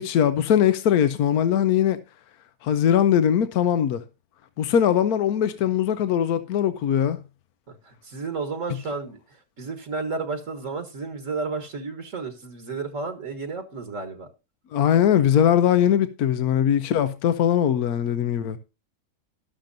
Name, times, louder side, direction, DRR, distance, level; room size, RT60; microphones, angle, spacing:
voice 1, 0.0-2.0 2.6-4.0 4.6-7.2 14.7-18.6, left 9 dB, 85° left, 1.2 m, -21 dB
voice 2, 7.7-14.3, right 4 dB, 60° right, 1.7 m, -32 dB
12.5 x 12.0 x 2.6 m
omnidirectional pair, 1.6 m